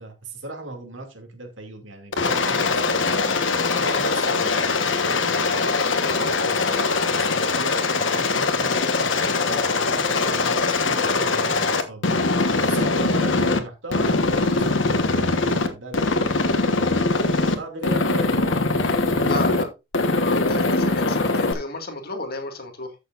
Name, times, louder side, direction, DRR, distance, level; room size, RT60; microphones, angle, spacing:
voice 1, 0.0-3.5 3.8-5.8 6.2-12.1 12.6-16.3 17.4-19.3, right 2 dB, 90° right, 2.5 m, -38 dB
Aircraft, 2.1-13.6 13.9-15.7 15.9-17.6 17.8-19.6 19.9-21.5, left 3 dB, 85° left, 1.3 m, -22 dB
voice 2, 19.3-19.7 20.1-22.9, left 2 dB, 55° left, 2.0 m, -32 dB
14.5 x 6.6 x 2.5 m
head